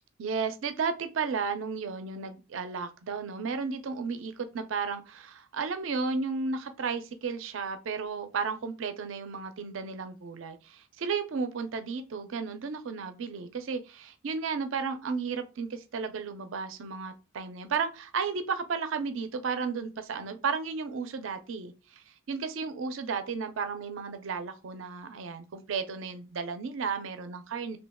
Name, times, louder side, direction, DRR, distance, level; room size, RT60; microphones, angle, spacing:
voice 1, 0.2-27.8, right 5 dB, 70° right, 0.5 m, -33 dB
3.0 x 2.7 x 3.4 m
head